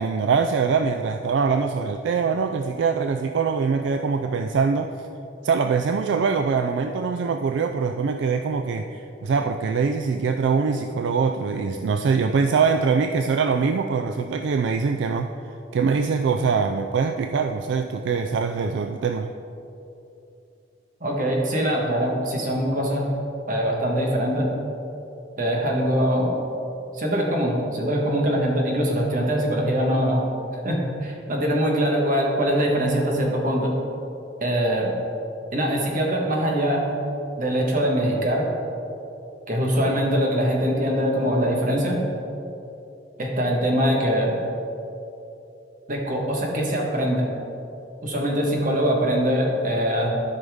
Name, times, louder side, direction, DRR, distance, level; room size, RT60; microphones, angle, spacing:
voice 1, 0.0-4.9 5.4-15.3 15.7-19.3, right 5 dB, 75° right, 7 dB, 0.3 m, -23 dB
voice 2, 21.0-23.1 23.5-24.5 25.4-26.3 26.9-30.2 30.6-33.7 34.4-34.9 35.5-36.9 37.4-38.4 39.5-42.0 43.2-44.3 45.9-47.3 48.0-50.1, equal, 45° right, -1 dB, 1.4 m, -23 dB
12.5 x 5.4 x 3.6 m, 2.9 s
head